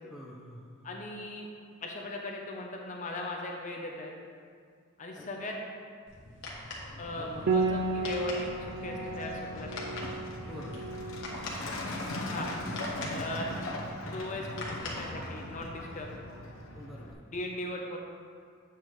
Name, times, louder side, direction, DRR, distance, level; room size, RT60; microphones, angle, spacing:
voice 1, 0.1-0.9 5.1-5.3 7.2-7.3 10.5-10.9 12.9-13.2 16.7-17.1, left 1 dB, ahead, -4 dB, 0.9 m, -47 dB
voice 2, 0.8-1.5 1.8-4.1 5.0-5.5 7.0-10.0 12.3-12.5 13.1-13.5 14.1-16.1 17.3-18.0, left 1 dB, 35° left, 0 dB, 0.6 m, -38 dB
sound 1, 6.1-15.7, left 2 dB, 60° left, 1.4 m, -44 dB
Truck, 6.9-17.1, left 1 dB, 75° left, 1.0 m, -40 dB
Piano, 7.5-16.8, right 3 dB, 55° right, 0.5 m, -36 dB
8.3 x 7.4 x 3.1 m, 2.1 s
head